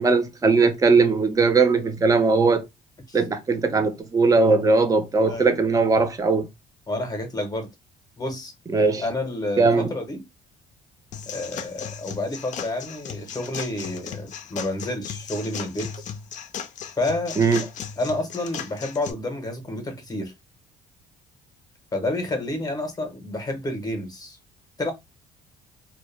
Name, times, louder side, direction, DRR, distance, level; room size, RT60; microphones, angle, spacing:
voice 1, 0.0-2.6 3.1-6.5 8.7-9.0 9.6-9.9 17.4-17.6, right 4 dB, 20° right, 0.5 m, -19 dB
voice 2, 6.9-7.7 8.2-8.5 9.0-10.2 11.3-15.9 17.0-17.4 18.0-20.3 21.9-24.4 24.8-24.9, left 1 dB, 20° left, 0.7 m, -29 dB
sound 1, 11.1-19.1, left 8 dB, 45° left, 0.4 m, -36 dB
2.2 x 2.1 x 3.1 m
cardioid pair, 110°, 17 cm